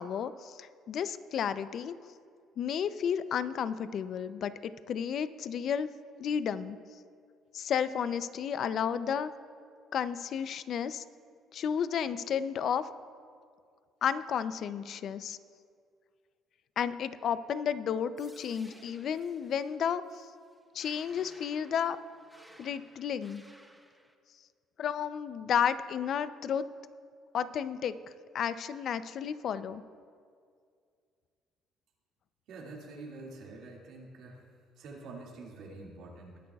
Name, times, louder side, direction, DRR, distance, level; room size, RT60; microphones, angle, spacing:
voice 1, 0.0-1.9 2.6-5.9 6.2-6.8 7.5-9.3 9.9-11.0 11.5-12.9 14.0-15.4 16.8-20.3 20.7-22.0 22.6-23.4 24.8-26.7 27.3-27.9 28.3-29.8, left 8 dB, 55° left, 13 dB, 0.5 m, -32 dB
sound 1, 18.2-24.1, right 1 dB, 5° right, 0.9 m, -58 dB
voice 2, 32.5-34.4 34.8-36.4, right 3 dB, 70° right, -2 dB, 2.2 m, -46 dB
21.0 x 10.0 x 2.3 m, 2.2 s
cardioid pair, 110°, 0 cm